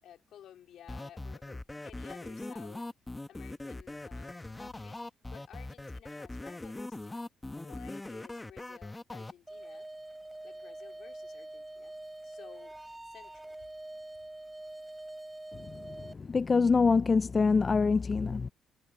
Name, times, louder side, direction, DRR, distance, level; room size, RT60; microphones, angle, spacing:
voice 1, 0.0-2.9 3.3-5.0 5.3-7.2 7.6-9.9 10.4-11.9 12.2-12.7 13.1-13.5, left 10 dB, 75° left, 4.0 m, -54 dB
sound 1, 0.9-9.3, left 2 dB, 15° left, 1.0 m, -41 dB
sound 2, 9.5-16.1, right 1 dB, 10° right, 3.3 m, -45 dB
voice 2, 16.1-18.5, left 4 dB, 35° left, 0.4 m, -25 dB
cardioid pair, 90°, 0 cm